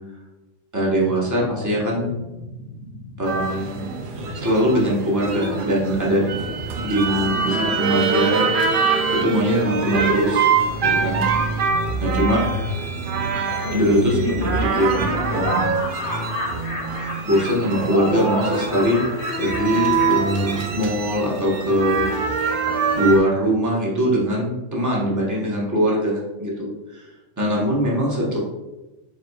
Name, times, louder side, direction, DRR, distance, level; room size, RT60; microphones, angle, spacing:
voice 1, 0.7-2.2 3.2-3.9 4.3-6.3 6.8-10.5 10.8-11.2 12.0-12.4 13.7-15.0 15.3-15.8 17.2-19.1 19.4-22.1 23.0-27.0 27.4-28.4, equal, 15° right, -4 dB, 0.8 m, -22 dB
sound 1, 0.8-14.4, right 1 dB, ahead, 1.2 m, -40 dB
sound 2, 3.3-23.2, right 4 dB, 65° right, 0.5 m, -24 dB
Laughter, 13.4-20.9, left 1 dB, 60° left, 1.3 m, -31 dB
4.3 x 3.8 x 2.2 m, 1.1 s
omnidirectional pair, 1.4 m